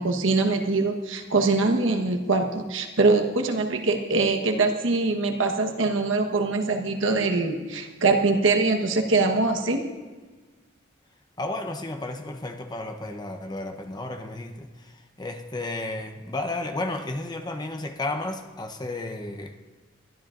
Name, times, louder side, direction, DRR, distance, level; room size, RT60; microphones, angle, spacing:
voice 1, 0.0-9.9, right 3 dB, 90° right, 3 dB, 1.2 m, -23 dB
voice 2, 11.4-19.6, left 2 dB, 20° left, 5 dB, 0.8 m, -33 dB
22.0 x 12.5 x 2.5 m, 1.4 s
head